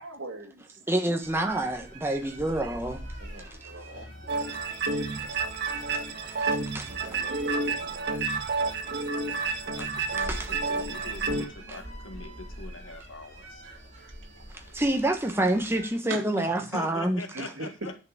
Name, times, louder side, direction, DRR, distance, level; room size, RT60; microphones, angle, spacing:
voice 1, 0.0-0.6 2.4-2.5 3.2-4.1 5.1-5.4 6.9-8.4 16.1-16.3 17.3-17.7, right 3 dB, 80° right, 2.3 m, -41 dB
voice 2, 0.9-3.1 4.5-4.6 6.7-7.2 10.3-10.5 14.5-17.2, right 1 dB, 10° right, 1.2 m, -27 dB
sound 1, 1.2-15.9, right 1 dB, 40° right, 5.0 m, -44 dB
voice 3, 3.9-4.4 9.6-13.6 16.4-18.0, left 2 dB, 80° left, 1.7 m, -43 dB
sound 2, 4.3-11.5, right 3 dB, 55° right, 1.4 m, -30 dB
10.5 x 4.8 x 7.4 m
head